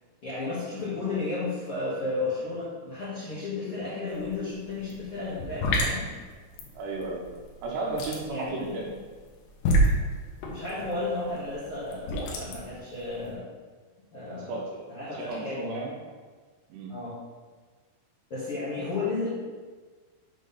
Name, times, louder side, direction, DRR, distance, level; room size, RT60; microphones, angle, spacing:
voice 1, 0.2-6.1 8.3-8.9 10.4-13.4 14.1-14.6 14.9-15.8 16.9-17.2 18.3-19.3, left 3 dB, 90° left, -9 dB, 1.2 m, -33 dB
sound 1, 4.1-4.3 4.6-13.3, right 1 dB, 70° left, 3.0 m, -28 dB
voice 2, 6.8-7.2 7.6-8.9 14.5-14.6 15.1-15.9 16.7-16.9, right 3 dB, 75° right, -2 dB, 2.7 m, -33 dB
7.5 x 4.0 x 5.5 m, 1.4 s
omnidirectional pair, 5.5 m